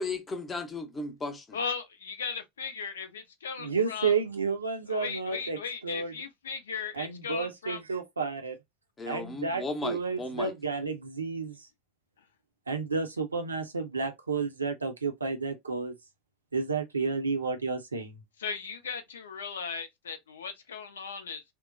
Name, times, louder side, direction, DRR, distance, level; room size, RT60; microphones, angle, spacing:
voice 1, 0.0-1.6 9.0-10.5, left 2 dB, 20° left, 0.6 m, -35 dB
voice 2, 1.5-4.2 4.9-7.8 18.4-21.4, left 6 dB, 70° left, 0.5 m, -37 dB
voice 3, 3.6-5.6 5.8-6.1 6.9-8.6 9.1-11.6 12.7-15.9 16.5-18.2, right 4 dB, 80° right, 0.5 m, -31 dB
2.9 x 2.0 x 2.3 m
figure-of-eight pair, 75°, 0 cm